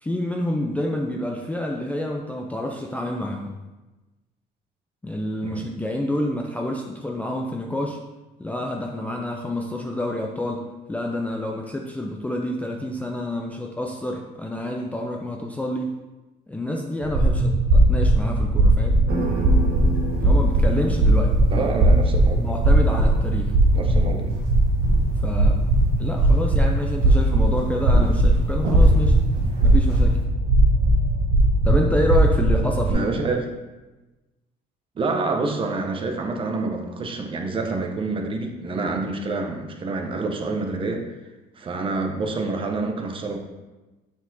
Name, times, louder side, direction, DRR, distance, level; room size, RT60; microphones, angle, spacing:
voice 1, 0.0-3.5 5.0-8.0 8.4-15.9 16.5-19.0 20.2-21.7 22.4-23.5 25.2-25.6 26.0-29.2 29.6-30.2 31.6-33.1, left 1 dB, 10° left, 1 dB, 0.4 m, -28 dB
sound 1, 17.0-32.9, right 1 dB, 85° right, 1.8 m, -19 dB
sound 2, 19.1-30.3, right 1 dB, 65° right, 1.4 m, -35 dB
voice 2, 21.5-22.4 23.7-24.3 32.9-33.4 35.0-41.1 41.6-43.4, right 3 dB, 30° right, 3 dB, 0.8 m, -27 dB
7.0 x 4.4 x 4.0 m, 1.1 s
cardioid pair, 140°, 17 cm